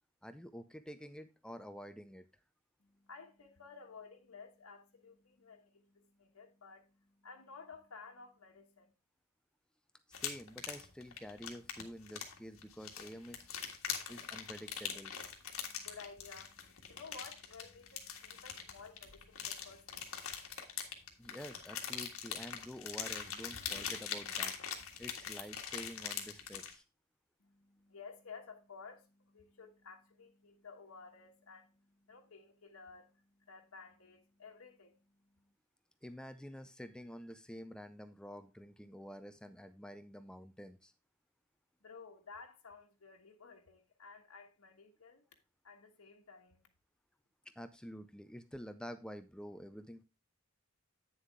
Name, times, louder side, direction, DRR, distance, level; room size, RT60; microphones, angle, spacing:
voice 1, 0.2-2.3 10.1-13.5 14.1-15.1 21.2-26.8 36.0-40.9 47.5-50.0, equal, 5° left, 0.4 m, -49 dB
voice 2, 2.8-8.9 15.5-20.2 27.4-35.5 41.8-45.2 45.6-46.7, left 5 dB, 90° left, 1.3 m, -55 dB
sound 1, 10.1-26.7, left 8 dB, 70° left, 1.7 m, -42 dB
9.2 x 6.9 x 3.5 m
head